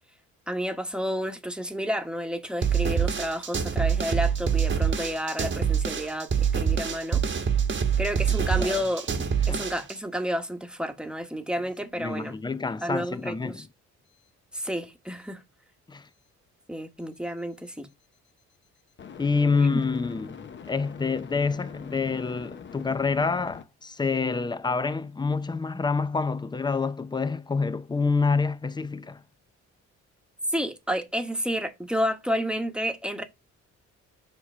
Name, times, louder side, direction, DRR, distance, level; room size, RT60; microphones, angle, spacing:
voice 1, 0.5-7.2 8.0-9.1 9.5-12.4 12.8-13.6 14.5-15.4 16.7-17.9 19.7-19.8 30.5-33.2, equal, 5° right, 1.2 m, -30 dB
sound 1, 2.6-10.0, right 7 dB, 40° right, 1.2 m, -25 dB
voice 2, 9.2-9.6 12.0-13.7 15.9-16.1 19.2-29.2, left 4 dB, 15° left, 0.5 m, -27 dB
sound 2, 14.1-14.3 19.0-23.6, left 6 dB, 40° left, 0.8 m, -43 dB
7.4 x 2.9 x 5.5 m
cardioid pair, 90°, 30 cm